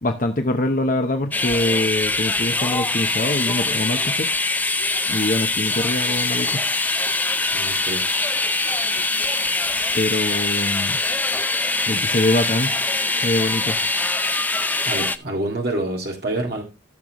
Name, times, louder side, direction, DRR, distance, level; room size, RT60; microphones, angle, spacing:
voice 1, 0.0-4.3 5.1-6.7 9.9-11.0 11.9-12.8 13.2-13.8, left 1 dB, 45° left, 5 dB, 0.8 m, -24 dB
sound 1, 1.3-15.2, left 3 dB, 10° left, 0.4 m, -23 dB
voice 2, 7.5-8.0 14.9-16.6, right 1 dB, 55° right, 1 dB, 2.0 m, -27 dB
14.5 x 6.8 x 3.0 m, 0.26 s
head